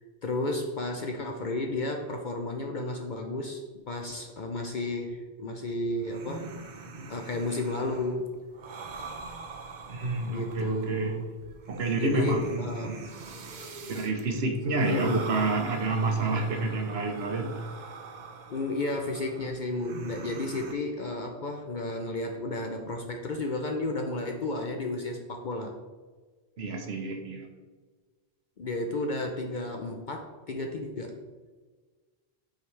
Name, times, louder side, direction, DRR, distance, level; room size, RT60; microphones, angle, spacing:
voice 1, 0.2-3.6 3.9-6.5 7.1-8.4 10.3-11.3 12.0-13.0 14.8-15.3 18.5-25.7 28.6-31.2, left 2 dB, 50° left, 3 dB, 0.7 m, -32 dB
sound 1, 5.9-20.7, right 3 dB, 50° right, 0.7 m, -43 dB
voice 2, 9.9-11.1 11.7-13.1 13.9-17.5 26.6-27.5, right 3 dB, 70° right, 4 dB, 1.1 m, -29 dB
8.4 x 5.0 x 3.2 m, 1.4 s
omnidirectional pair, 1.1 m